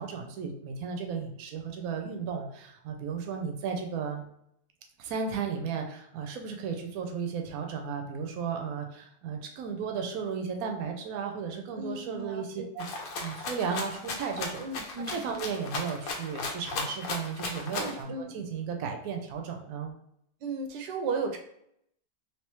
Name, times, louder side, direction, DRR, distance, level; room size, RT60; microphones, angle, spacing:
voice 1, 0.0-4.3 5.0-14.6 15.1-19.9, right 6 dB, 70° right, 3 dB, 1.0 m, -34 dB
voice 2, 11.8-12.7 14.6-15.2 17.8-18.4 20.4-21.4, right 4 dB, 90° right, 3 dB, 1.2 m, -35 dB
Rattle (instrument), 12.8-18.0, left 3 dB, 65° left, 1.0 m, -36 dB
3.3 x 2.9 x 3.0 m, 0.72 s
omnidirectional pair, 1.8 m